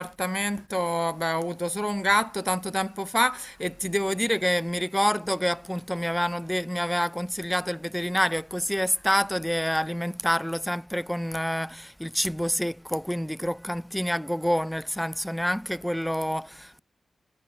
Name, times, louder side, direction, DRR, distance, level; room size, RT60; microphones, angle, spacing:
voice 1, 0.0-16.8, equal, 5° left, 0.3 m, -27 dB
cardioid pair, 45°, 0 cm